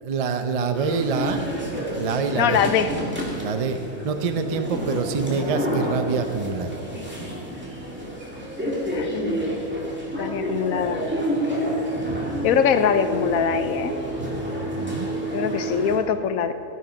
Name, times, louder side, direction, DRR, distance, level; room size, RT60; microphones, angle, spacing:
voice 1, 0.0-1.4 2.0-2.6 3.4-3.8 4.0-6.8 14.6-15.1, right 5 dB, 60° right, 8 dB, 0.3 m, -26 dB
sound 1, 0.7-16.0, equal, 5° right, 2.1 m, -29 dB
voice 2, 2.3-2.9 8.9-9.1 10.2-11.0 12.4-13.9 15.3-16.5, left 7 dB, 70° left, 11 dB, 1.0 m, -22 dB
14.0 x 9.5 x 5.1 m, 2.7 s
omnidirectional pair, 1.7 m